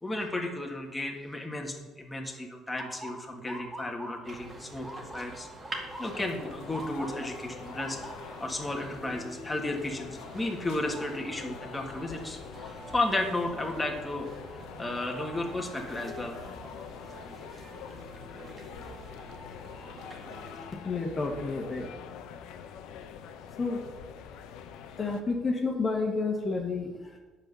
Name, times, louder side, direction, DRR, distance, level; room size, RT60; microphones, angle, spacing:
voice 1, 0.0-4.9 5.1-5.5 5.8-8.0 8.4-14.3 14.8-16.4, left 2 dB, 10° left, 1 dB, 1.7 m, -33 dB
Motor vehicle (road) / Siren, 2.8-14.7 15.1-15.6 16.4-16.7 18.5-18.8 19.3-19.4 19.8-20.5, equal, 5° right, 1.7 m, -47 dB
sound 1, 4.2-20.7, right 1 dB, 35° right, 2.3 m, -46 dB
sound 2, 6.1-25.2, left 8 dB, 80° left, 0.8 m, -45 dB
voice 2, 20.7-21.9 23.6-23.8 25.0-27.2, left 3 dB, 35° left, 1 dB, 1.5 m, -30 dB
9.0 x 5.8 x 6.9 m, 1.2 s
cardioid pair, 105°, 0 cm